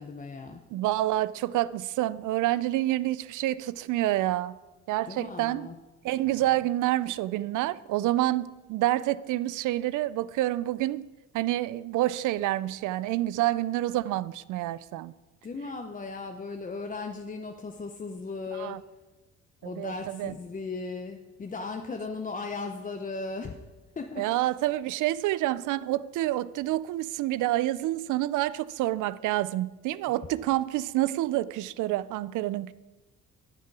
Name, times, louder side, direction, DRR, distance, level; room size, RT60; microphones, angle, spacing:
voice 1, 0.0-0.6 5.1-5.8 15.4-18.8 19.6-23.6 24.0-24.3, left 3 dB, 25° left, 0.7 m, -37 dB
voice 2, 0.7-4.6 4.9-5.7 6.0-11.1 11.3-15.1 18.6-18.8 19.6-20.3 24.2-32.7, right 15 dB, 80° right, 0.5 m, -28 dB
12.5 x 7.5 x 4.7 m
cardioid pair, 90°, 30 cm